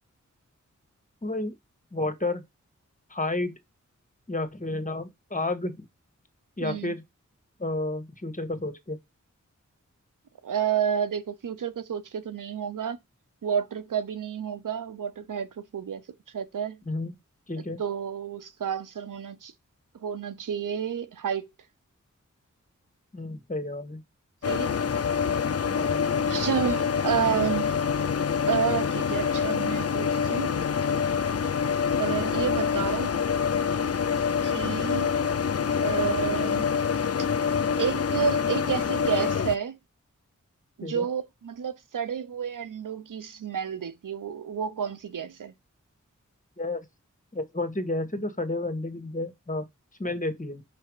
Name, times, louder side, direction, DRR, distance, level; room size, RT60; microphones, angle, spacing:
voice 1, 1.2-1.5 1.9-2.4 3.1-3.6 4.3-5.8 6.6-7.0 7.6-9.0 16.9-17.1 17.5-17.8 23.1-24.0 25.7-26.0 32.8-32.9 40.8-41.0 46.6-46.8 47.3-49.6 50.0-50.6, left 2 dB, 25° left, 1.6 m, -31 dB
voice 2, 6.6-7.0 10.4-13.0 13.4-16.0 16.3-16.8 17.8-19.5 20.0-21.5 24.5-24.8 26.3-27.8 28.5-30.6 32.0-33.2 34.4-35.1 35.8-36.7 37.8-39.8 40.8-45.5, right 7 dB, 85° right, 0.7 m, -30 dB
sound 1, 24.4-39.6, left 6 dB, 50° left, 0.6 m, -26 dB
6.2 x 3.3 x 4.8 m
cardioid pair, 40°, 31 cm